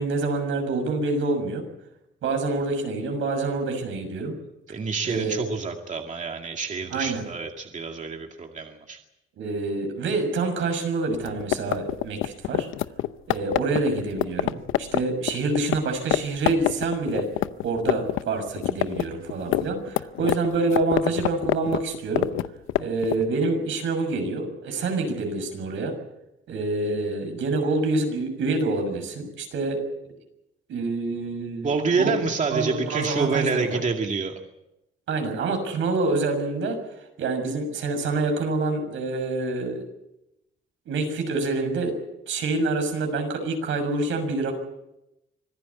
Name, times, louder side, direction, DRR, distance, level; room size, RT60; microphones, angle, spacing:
voice 1, 0.0-1.6 2.2-4.3 5.0-5.4 6.9-7.2 9.4-12.7 13.3-17.3 17.6-22.3 22.8-25.9 26.5-29.8 30.7-32.1 32.5-33.8 35.1-36.8 37.2-39.8 40.9-42.0 42.3-44.5, right 3 dB, 75° right, 6 dB, 6.5 m, -27 dB
voice 2, 4.7-9.0 31.6-34.4, right 4 dB, 40° right, 3 dB, 2.2 m, -27 dB
sound 1, 11.1-15.8 16.1-16.2 16.5-18.2 18.5-23.2, left 15 dB, 90° left, 0.8 m, -25 dB
25.0 x 15.5 x 8.4 m, 0.90 s
cardioid pair, 90°, 20 cm